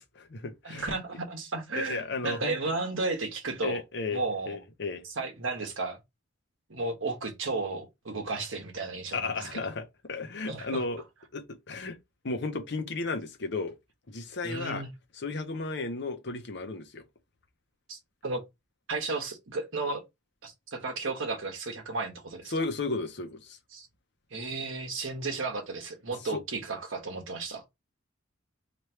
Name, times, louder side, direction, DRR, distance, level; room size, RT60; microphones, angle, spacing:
voice 1, 0.0-1.0 1.8-2.6 3.6-5.0 9.1-11.0 11.3-12.0 12.2-13.8 14.1-14.8 15.2-17.0 22.5-23.6 26.3-26.4, left 3 dB, 55° left, 0.7 m, -34 dB
voice 2, 0.6-3.8 4.1-4.6 5.2-6.0 6.7-9.7 10.5-10.8 14.4-14.9 17.9-18.4 18.9-20.0 20.4-22.5 23.7-23.9 24.3-27.6, right 3 dB, 75° right, 1.2 m, -34 dB
3.1 x 2.6 x 4.4 m
head